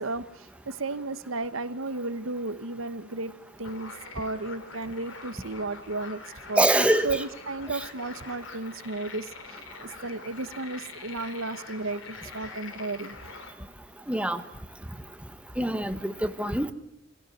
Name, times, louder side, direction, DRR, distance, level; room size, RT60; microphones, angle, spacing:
voice 1, 0.0-3.3 3.6-6.2 6.5-6.6 7.0-13.2, right 3 dB, 80° right, 1.3 m, -34 dB
sound 1, 3.6-13.5, left 4 dB, 70° left, 3.3 m, -44 dB
voice 2, 6.6-7.2 14.1-14.4 15.6-16.7, right 1 dB, 5° right, 1.2 m, -24 dB
25.5 x 16.5 x 9.4 m
head